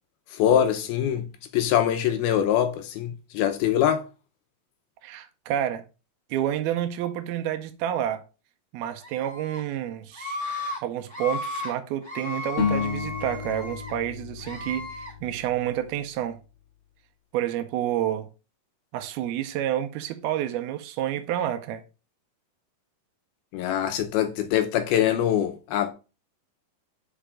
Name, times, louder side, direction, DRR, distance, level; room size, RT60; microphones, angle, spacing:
voice 1, 0.3-1.3 1.5-4.0 23.5-25.9, left 10 dB, 80° left, 2.5 m, -23 dB
voice 2, 5.0-5.9 6.3-8.2 8.7-10.4 10.8-16.4 17.3-18.3 18.9-21.8, right 11 dB, 80° right, 2.5 m, -29 dB
Screaming, 9.0-9.6 10.1-10.8 11.1-11.7 12.0-13.9 14.4-15.1, left 3 dB, 5° right, 2.8 m, -34 dB
sound 1, 12.6-15.8, left 6 dB, 55° left, 1.5 m, -31 dB
5.7 x 5.1 x 5.0 m
omnidirectional pair, 4.6 m